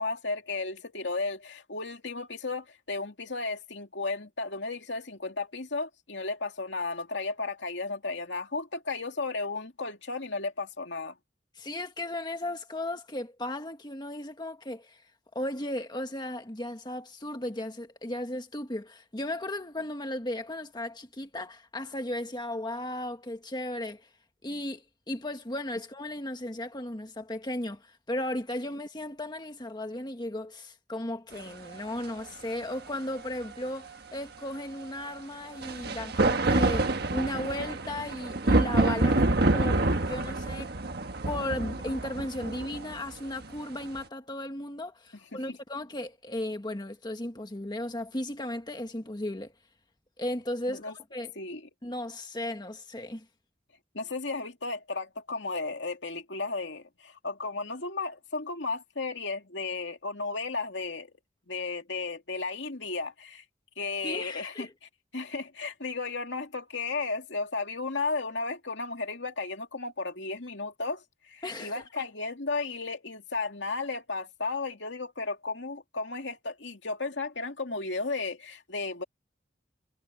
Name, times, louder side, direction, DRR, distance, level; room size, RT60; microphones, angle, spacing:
voice 1, 0.0-11.1 40.6-40.7 45.3-45.6 50.7-50.9 51.4-51.7 53.9-61.1 61.5-63.4 63.8-64.7 65.1-79.0, left 3 dB, 70° left, 2.7 m, -34 dB
voice 2, 11.6-15.0 15.3-24.1 24.4-40.7 41.3-49.5 50.2-51.3 51.8-53.2 64.0-64.7 71.4-72.0, left 1 dB, 25° left, 1.5 m, -35 dB
siren n thunder, 31.7-31.8 35.6-44.0, right 2 dB, 60° right, 1.4 m, -27 dB
head